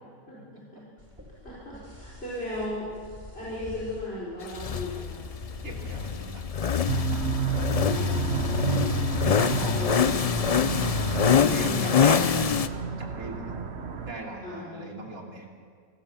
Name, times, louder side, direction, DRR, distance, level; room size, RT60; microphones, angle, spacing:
voice 1, 0.4-0.8 5.6-6.6 9.2-10.1 10.8-11.0 11.5-12.7 13.0-13.6 14.0-15.5, right 2 dB, 75° right, 0 dB, 3.4 m, -39 dB
sound 1, 1.0-8.5, equal, 10° right, 4.5 m, -46 dB
voice 2, 1.4-3.0 3.3-5.2 7.8-9.0 9.5-10.2 11.3-12.0 14.4-14.8, left 1 dB, 45° left, -8 dB, 5.1 m, -36 dB
sound 2, 4.5-12.7, left 7 dB, 65° left, 0.3 m, -25 dB
sound 3, 6.9-14.1, right 6 dB, 50° right, 1.4 m, -31 dB
27.5 x 15.0 x 7.1 m, 2.1 s
omnidirectional pair, 1.5 m